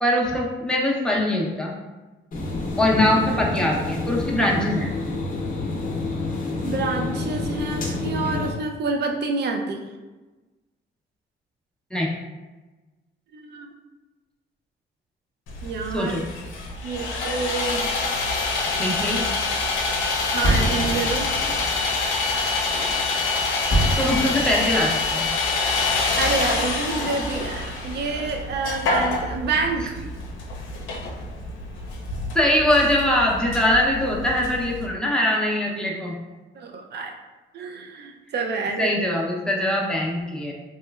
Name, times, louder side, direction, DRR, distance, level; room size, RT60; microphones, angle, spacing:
voice 1, 0.0-1.7 2.8-4.9 11.9-12.1 15.9-16.2 18.8-19.3 24.0-25.3 32.3-36.2 38.8-40.5, left 1 dB, 5° left, -3 dB, 0.6 m, -22 dB
sound 1, 2.3-8.5, left 2 dB, 45° left, 0.7 m, -28 dB
voice 2, 6.6-9.8 13.3-13.7 15.6-16.2 16.8-17.8 20.3-21.3 25.9-30.0 36.5-37.1 37.5-38.9, right 4 dB, 60° right, 4 dB, 0.5 m, -28 dB
Sawing, 15.5-34.9, left 3 dB, 85° left, 0.5 m, -26 dB
sound 2, 20.0-28.0 28.2-28.7 29.2-29.3 29.6-29.7 30.2-30.6, right 1 dB, 30° right, 1.4 m, -30 dB
3.1 x 3.0 x 2.3 m, 1.2 s
cardioid pair, 90°, 20 cm